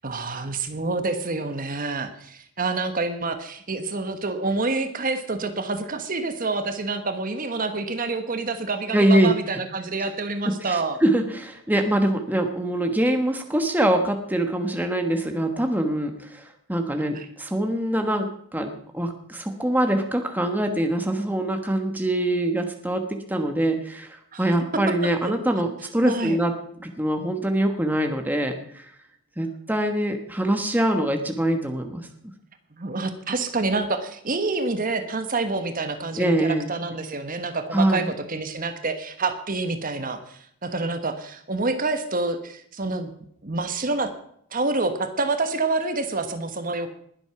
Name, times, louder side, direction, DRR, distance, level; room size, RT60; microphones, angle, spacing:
voice 1, 0.0-11.0 17.1-17.3 24.3-24.4 24.7-25.3 26.0-26.4 32.7-43.1 43.4-44.1 44.5-46.9, right 3 dB, 40° right, 8 dB, 1.3 m, -27 dB
voice 2, 8.9-9.3 10.0-10.1 10.5-16.4 16.7-26.5 26.8-28.8 29.4-32.1 36.2-36.7 37.7-38.1, right 1 dB, 10° right, 5 dB, 1.2 m, -24 dB
20.5 x 8.0 x 5.9 m, 0.65 s
head